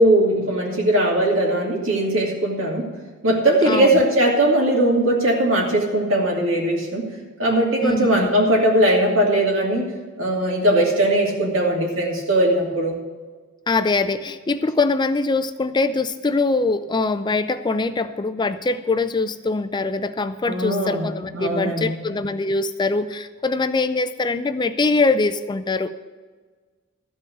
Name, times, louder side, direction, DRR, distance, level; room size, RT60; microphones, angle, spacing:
voice 1, 0.0-2.9 3.2-7.1 7.4-9.9 10.2-13.0 20.5-21.9, right 1 dB, 75° right, -1 dB, 2.7 m, -19 dB
voice 2, 3.7-4.0 7.8-8.3 13.7-25.9, left 3 dB, 20° left, 11 dB, 0.4 m, -23 dB
14.0 x 5.4 x 7.8 m, 1.5 s
head